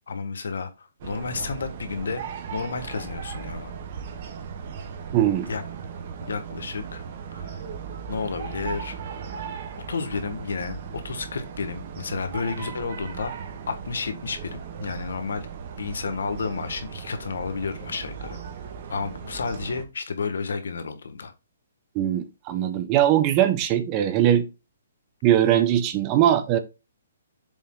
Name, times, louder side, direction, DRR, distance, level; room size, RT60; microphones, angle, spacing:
voice 1, 0.1-2.2 2.5-3.7 5.5-5.6 6.2-7.0 7.3-7.6 8.1-8.9 9.9-13.3 13.7-15.5 15.8-18.4 18.9-21.3, left 5 dB, 80° left, 1.6 m, -31 dB
sound 1, 1.0-19.8, right 6 dB, 40° right, 1.2 m, -37 dB
voice 2, 5.1-5.5 21.9-24.5 25.2-26.6, right 11 dB, 25° right, 0.8 m, -21 dB
7.2 x 4.1 x 3.8 m
hypercardioid pair, 165°, 0 cm